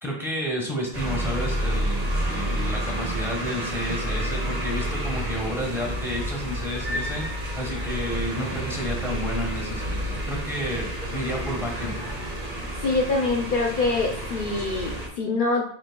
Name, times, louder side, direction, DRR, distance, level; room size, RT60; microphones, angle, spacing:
voice 1, 0.0-7.2 7.6-9.8 10.1-10.9 11.1-12.0, equal, ahead, -1 dB, 1.1 m, -31 dB
sound 1, 0.9-15.1, right 1 dB, 70° right, 1.3 m, -29 dB
voice 2, 12.8-15.6, left 3 dB, 60° left, 0 dB, 0.7 m, -24 dB
7.1 x 3.0 x 2.2 m, 0.63 s
omnidirectional pair, 1.1 m